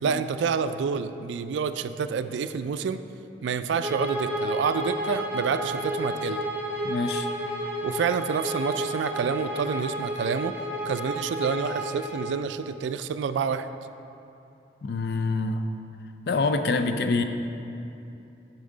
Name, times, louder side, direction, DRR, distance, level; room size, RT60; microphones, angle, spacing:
voice 1, 0.0-3.0 3.4-6.4 7.8-10.5 10.9-13.7, right 6 dB, 80° right, 11 dB, 0.3 m, -28 dB
Bowed string instrument, 3.8-12.3, equal, 10° right, 1.0 m, -31 dB
voice 2, 6.8-7.3 14.8-15.6 16.3-17.2, left 3 dB, 60° left, 7 dB, 0.4 m, -26 dB
8.6 x 6.2 x 3.8 m, 2.8 s
head